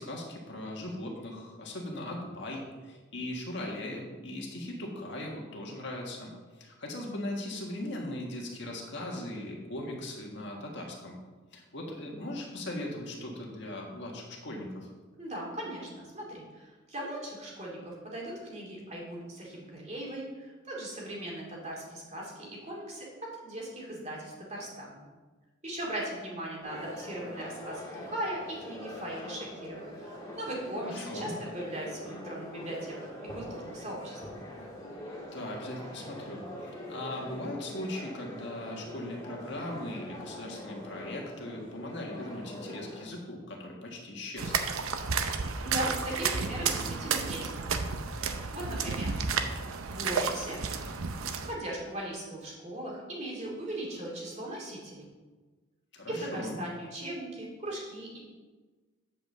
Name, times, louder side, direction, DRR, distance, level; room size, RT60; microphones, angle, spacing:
voice 1, 0.0-11.2 11.5-14.9 30.8-31.3 35.3-44.6 55.9-56.6, left 1 dB, 55° left, -1 dB, 1.7 m, -39 dB
voice 2, 15.2-25.1 25.6-34.2 45.6-47.5 48.5-49.1 49.9-50.6 51.4-55.0 56.1-58.2, right 1 dB, 35° right, -3 dB, 2.5 m, -38 dB
sound 1, 26.6-43.1, left 1 dB, 15° left, 3.4 m, -43 dB
sound 2, 44.4-51.5, right 5 dB, 90° right, 0.7 m, -32 dB
8.6 x 5.3 x 6.8 m, 1.3 s
head